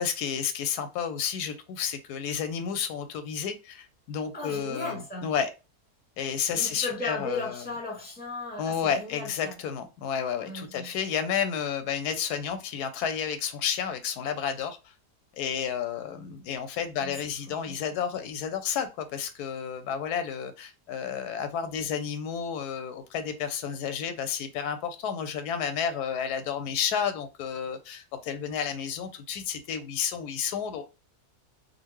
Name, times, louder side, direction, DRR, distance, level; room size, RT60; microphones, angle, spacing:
voice 1, 0.0-5.5 6.2-7.6 8.6-14.8 15.3-30.8, left 7 dB, 90° left, 1.1 m, -31 dB
voice 2, 4.3-5.3 6.5-9.5 10.4-11.0 17.0-17.2 17.5-17.8, left 2 dB, 5° left, 1.0 m, -36 dB
3.8 x 2.3 x 3.0 m
omnidirectional pair, 1.6 m